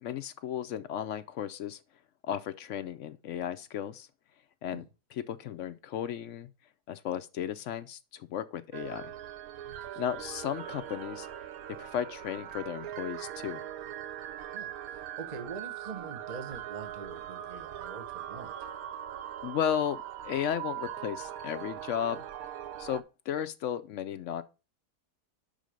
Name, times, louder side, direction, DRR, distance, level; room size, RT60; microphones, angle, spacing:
voice 1, 0.0-1.8 2.2-4.1 4.6-4.8 5.1-6.5 6.9-9.1 10.0-11.3 11.8-13.6 19.4-22.2 22.8-24.4, left 9 dB, 70° left, 0.7 m, -34 dB
sound 1, 8.7-23.0, right 11 dB, 70° right, 1.1 m, -41 dB
voice 2, 9.7-10.0 14.5-18.7, right 5 dB, 35° right, 0.8 m, -44 dB
5.7 x 5.2 x 6.3 m
omnidirectional pair, 1.7 m